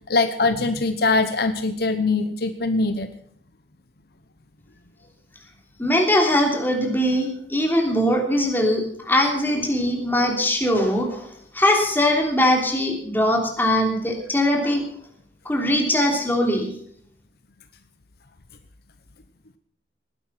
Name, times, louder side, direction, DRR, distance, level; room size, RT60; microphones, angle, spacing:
voice 1, 0.1-3.1, left 3 dB, 60° left, 10 dB, 0.9 m, -22 dB
voice 2, 5.8-11.3 11.5-14.8 15.4-16.7, left 1 dB, 10° left, 1 dB, 3.2 m, -21 dB
19.5 x 11.0 x 5.7 m, 0.63 s
head